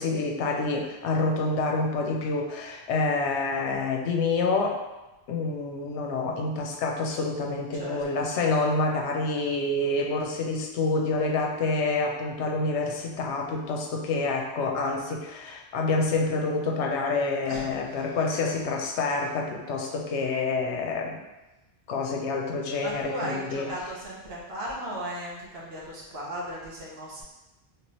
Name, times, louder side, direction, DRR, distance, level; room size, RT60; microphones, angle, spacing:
voice 1, 0.0-4.8 5.3-21.2 21.9-23.7, left 3 dB, 85° left, 1 dB, 0.9 m, -27 dB
voice 2, 7.7-8.4 17.5-17.6 17.9-18.0 22.8-27.2, right 1 dB, 65° right, -5 dB, 1.2 m, -36 dB
3.3 x 3.0 x 3.0 m, 1.0 s
omnidirectional pair, 1.2 m